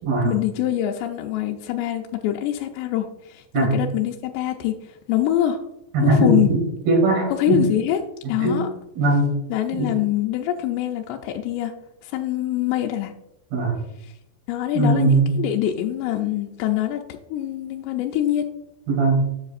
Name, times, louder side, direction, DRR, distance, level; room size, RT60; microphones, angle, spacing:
voice 1, 0.2-5.7 6.0-6.5 7.3-8.0 8.3-8.7 9.5-11.7 12.0-13.1 14.0-14.1 14.5-17.0 17.3-18.5, left 12 dB, 85° left, 2 dB, 2.7 m, -24 dB
voice 2, 5.9-6.6 6.9-7.6 8.4-8.6 9.0-9.3 9.7-9.9 13.5-13.8 14.7-15.3 18.9-19.2, right 2 dB, 65° right, -2 dB, 4.8 m, -19 dB
9.7 x 7.6 x 2.5 m, 0.83 s
omnidirectional pair, 4.9 m